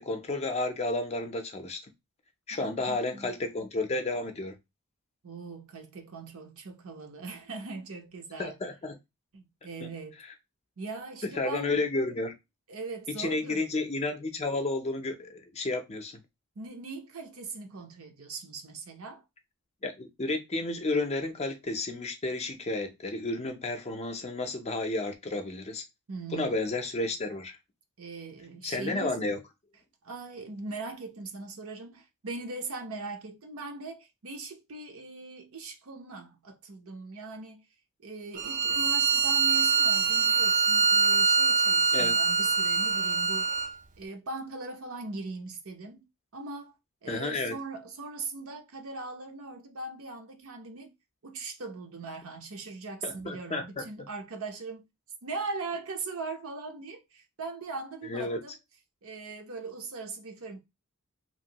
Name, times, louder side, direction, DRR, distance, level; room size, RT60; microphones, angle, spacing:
voice 1, 0.0-1.8 2.5-4.5 8.4-9.0 11.2-12.3 13.2-16.1 19.8-25.8 26.3-27.6 28.6-29.4 41.9-42.1 47.1-47.5 53.0-53.9 58.0-58.4, left 2 dB, 30° left, 0.5 m, -31 dB
voice 2, 2.5-3.3 5.2-8.6 9.3-10.2 10.8-11.8 12.7-13.6 16.6-19.2 26.1-26.8 28.0-29.1 30.0-37.6 38.0-43.7 44.0-46.1 46.3-46.7 47.0-50.9 51.2-54.9 55.2-58.6 59.0-60.6, right 3 dB, 70° right, 0.7 m, -40 dB
Bowed string instrument, 38.4-43.7, right 5 dB, 35° right, 0.4 m, -24 dB
3.0 x 2.6 x 2.8 m
head